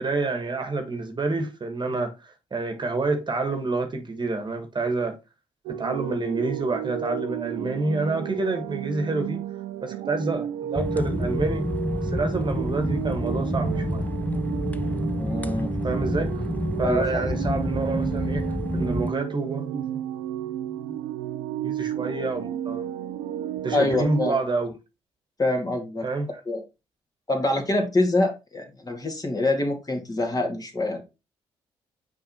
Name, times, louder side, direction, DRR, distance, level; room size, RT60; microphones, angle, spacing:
voice 1, 0.0-5.2 5.7-9.4 9.8-11.7 12.0-14.1 15.8-16.5 16.8-20.2 20.6-20.7 21.6-22.9 23.6-24.7 26.0-26.4, right 3 dB, 35° right, 1.4 m, -28 dB
sound 1, 5.7-24.3, right 11 dB, 85° right, 0.5 m, -32 dB
sound 2, 10.7-19.1, left 1 dB, 10° left, 0.6 m, -29 dB
voice 2, 15.2-15.8 16.8-17.2 23.7-24.4 25.4-26.1 26.5-26.6 27.3-31.0, left 2 dB, 30° left, 2.3 m, -25 dB
6.0 x 4.7 x 4.2 m
supercardioid pair, 50°, 13 cm